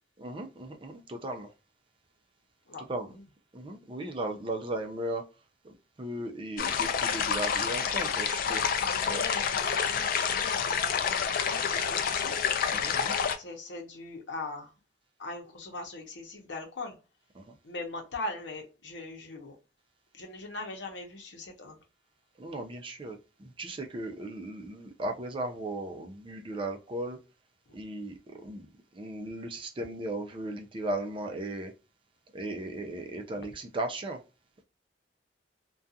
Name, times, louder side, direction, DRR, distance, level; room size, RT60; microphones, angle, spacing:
voice 1, 0.2-1.5 2.8-3.1 3.5-5.2 5.6-8.6 9.1-9.2 12.7-13.1 17.4-17.6 22.4-27.2 27.7-28.7 28.9-31.7 32.3-34.2, right 1 dB, 30° right, 4 dB, 0.5 m, -36 dB
sound 1, 6.6-13.4, left 7 dB, 55° left, 0.3 m, -28 dB
voice 2, 8.8-12.3 13.4-14.7 15.2-17.0 17.6-19.6 20.1-21.8, left 2 dB, 75° left, 3 dB, 0.8 m, -40 dB
2.4 x 2.3 x 2.6 m, 0.31 s
head